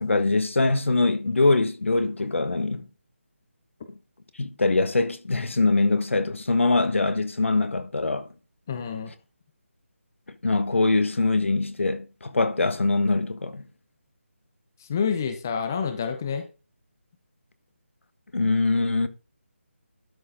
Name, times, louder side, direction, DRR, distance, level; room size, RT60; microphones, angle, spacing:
voice 1, 0.0-2.9 4.4-8.3 10.4-13.6 18.3-19.1, left 3 dB, 70° left, 1.4 m, -23 dB
voice 2, 8.7-9.1 14.8-16.5, left 6 dB, 15° left, 0.6 m, -28 dB
12.0 x 6.5 x 3.8 m
figure-of-eight pair, 175°, 7 cm